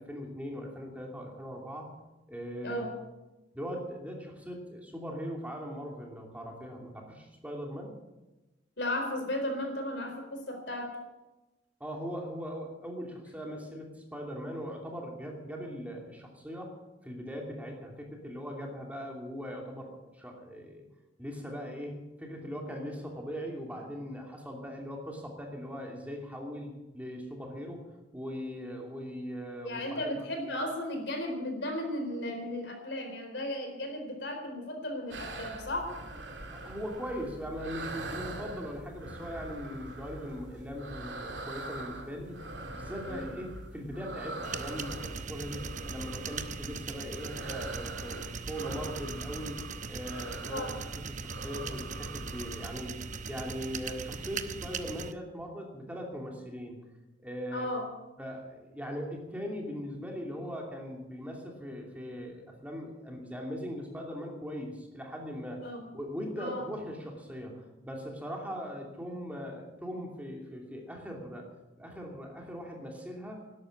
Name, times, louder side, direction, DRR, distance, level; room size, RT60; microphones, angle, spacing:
voice 1, 0.0-1.9 2.3-2.8 3.5-8.0 11.8-16.8 17.0-20.8 21.2-27.9 28.1-30.1 36.5-42.4 42.7-49.6 49.9-56.8 57.2-57.7 58.2-65.6 65.9-71.5 71.8-73.4, equal, 10° right, 0 dB, 2.8 m, -40 dB
voice 2, 2.6-3.0 8.8-11.0 29.6-35.9 43.0-43.4 50.5-50.8 57.5-57.9 65.6-65.8 66.4-66.7, left 1 dB, 65° left, 4 dB, 4.3 m, -35 dB
sound 1, 35.1-52.8, right 2 dB, 70° right, 2.5 m, -43 dB
sound 2, 44.4-55.1, right 5 dB, 45° right, 0.9 m, -40 dB
12.5 x 12.0 x 8.6 m, 1.0 s
head